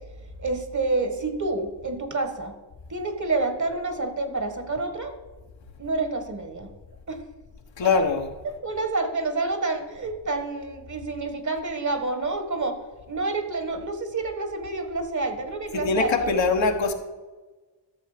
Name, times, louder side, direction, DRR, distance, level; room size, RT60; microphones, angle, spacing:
voice 1, 0.4-2.5 2.9-5.1 5.8-6.7 7.1-7.2 8.6-12.8 13.1-16.5, right 3 dB, 40° right, 7 dB, 1.6 m, -28 dB
voice 2, 7.8-8.3 15.7-16.9, left 4 dB, 75° left, 3 dB, 1.2 m, -23 dB
13.0 x 6.7 x 5.1 m, 1.3 s
cardioid pair, 75°, 45 cm